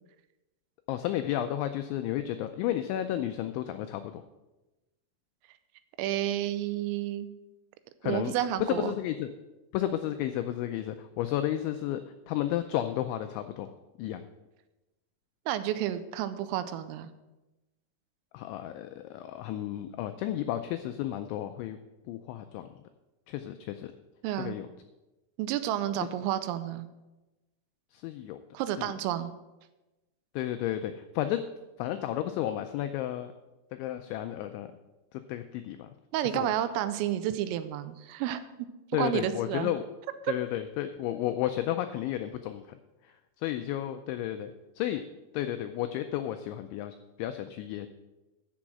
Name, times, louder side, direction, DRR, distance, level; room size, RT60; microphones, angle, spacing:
voice 1, 0.9-4.2 8.0-8.3 8.7-9.3 9.7-12.0 12.3-13.7 14.0-14.3 18.3-21.8 22.1-22.7 23.3-23.9 24.4-24.7 27.9-28.4 28.8-28.9 30.3-31.4 31.8-33.3 33.7-34.7 35.1-35.9 36.3-36.5 38.9-39.8 40.3-42.8 43.0-45.0 45.3-47.9, left 12 dB, 85° left, 8 dB, 2.6 m, -32 dB
voice 2, 6.0-7.3 8.0-8.9 15.5-17.1 24.2-24.6 25.4-26.9 28.5-29.3 36.1-38.4 39.0-39.7 40.2-40.3, right 12 dB, 85° right, 12 dB, 3.3 m, -30 dB
13.0 x 6.2 x 7.4 m, 1.0 s
omnidirectional pair, 6.0 m